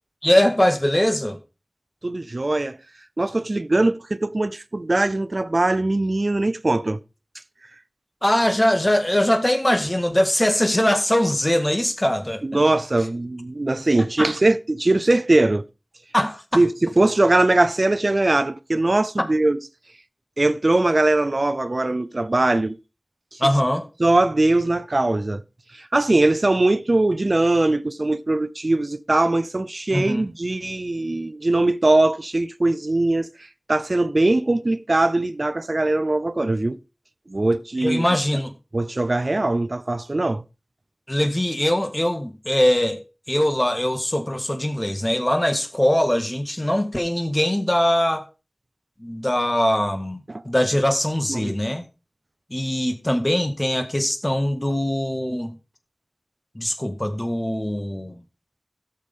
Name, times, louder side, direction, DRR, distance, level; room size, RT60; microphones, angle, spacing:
voice 1, 0.2-1.4 8.2-12.4 14.2-14.3 16.1-16.4 23.4-23.9 29.9-30.2 37.8-38.5 41.1-43.0 43.3-48.2 49.0-51.8 52.5-55.5 56.6-58.2, left 1 dB, 30° left, 1.8 m, -21 dB
voice 2, 2.0-2.8 3.2-7.0 12.4-15.6 16.5-19.6 20.4-22.8 23.3-23.4 24.0-25.4 25.7-33.3 33.7-36.8 37.3-38.0 38.7-40.4 50.3-50.4 51.3-51.6, right 2 dB, 70° right, 0.5 m, -21 dB
16.5 x 6.6 x 3.6 m
wide cardioid pair, 45°, 0 cm